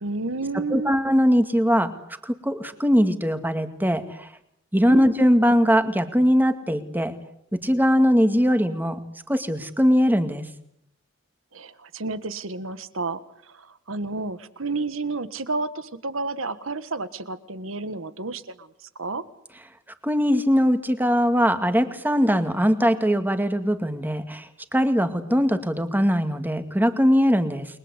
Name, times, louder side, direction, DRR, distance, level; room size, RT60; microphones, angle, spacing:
voice 1, 0.0-0.9 4.9-5.4 11.5-13.2 13.5-18.7 19.0-19.2, right 3 dB, 85° right, 13 dB, 1.6 m, -31 dB
voice 2, 0.7-1.9 2.2-4.3 4.7-7.1 7.6-10.4 20.0-27.7, equal, 10° right, 8 dB, 2.1 m, -21 dB
30.0 x 22.0 x 8.2 m, 0.75 s
head